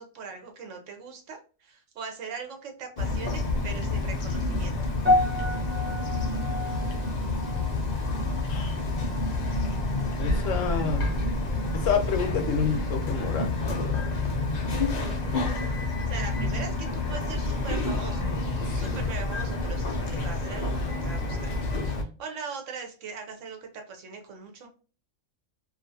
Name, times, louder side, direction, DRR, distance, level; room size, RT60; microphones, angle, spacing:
voice 1, 0.0-4.8 15.0-15.5 16.1-18.3 18.7-21.5 21.9-24.7, right 5 dB, 70° right, 4 dB, 1.0 m, -40 dB
Bird vocalization bird call bird song, 3.0-22.0, left 2 dB, 55° left, 0.4 m, -28 dB
sound 1, 5.1-9.4 9.7-10.1 10.7-10.8, left 2 dB, 10° right, 0.7 m, -30 dB
voice 2, 10.2-11.1 11.7-13.6 13.9-14.1 18.6-19.1, left 6 dB, 75° left, 6 dB, 0.9 m, -29 dB
2.5 x 2.4 x 2.6 m, 0.36 s
omnidirectional pair, 1.3 m